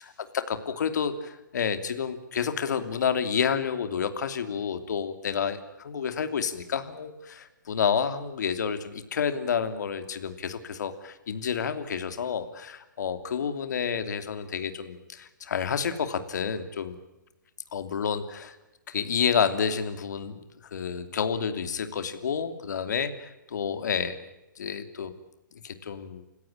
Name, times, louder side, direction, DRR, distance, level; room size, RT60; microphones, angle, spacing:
voice 1, 0.5-17.0 17.7-18.6 18.9-20.4 20.7-24.2 24.6-25.1 25.6-26.2, left 7 dB, 60° left, 9 dB, 2.9 m, -29 dB
29.5 x 17.0 x 8.7 m, 1.0 s
hypercardioid pair, 145°, 11 cm